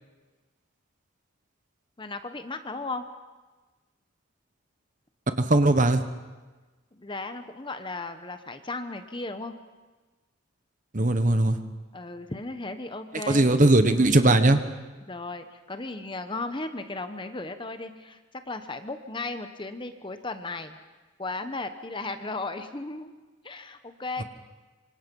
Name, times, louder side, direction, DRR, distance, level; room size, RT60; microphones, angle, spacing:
voice 1, 2.0-3.1 6.9-9.5 11.9-13.5 15.1-18.2 18.5-20.8 21.2-23.1 23.4-24.2, left 2 dB, 20° left, 9 dB, 1.0 m, -35 dB
voice 2, 5.4-6.0 10.9-11.6 13.3-14.6, right 2 dB, 35° right, 9 dB, 1.2 m, -19 dB
25.5 x 25.5 x 5.4 m, 1.3 s
head